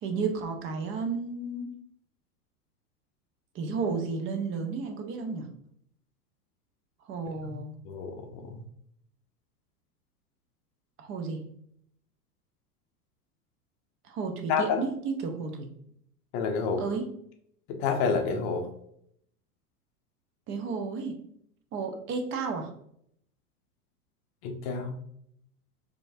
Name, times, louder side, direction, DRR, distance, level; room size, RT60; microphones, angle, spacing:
voice 1, 0.0-1.7 3.5-5.5 7.0-7.8 11.0-11.5 14.0-15.7 16.8-17.1 20.5-21.2 21.7-22.7, right 4 dB, 30° right, 5 dB, 0.6 m, -32 dB
voice 2, 7.8-8.6 14.5-14.8 16.3-16.8 17.7-18.7 24.4-24.9, left 5 dB, 40° left, 4 dB, 0.6 m, -29 dB
4.4 x 2.7 x 2.6 m, 0.69 s
hypercardioid pair, 90°, 46 cm